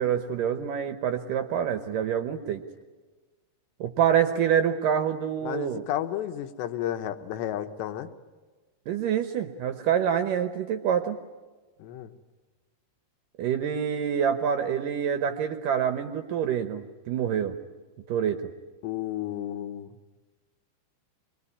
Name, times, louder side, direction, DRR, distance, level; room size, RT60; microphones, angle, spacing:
voice 1, 0.0-2.6 3.8-5.8 8.9-11.2 13.4-17.6 18.1-18.4, right 8 dB, 75° right, 7 dB, 2.1 m, -26 dB
voice 2, 5.4-8.1 11.8-12.1 18.8-19.9, left 11 dB, 85° left, 8 dB, 3.3 m, -32 dB
25.5 x 22.0 x 9.9 m, 1.3 s
omnidirectional pair, 4.9 m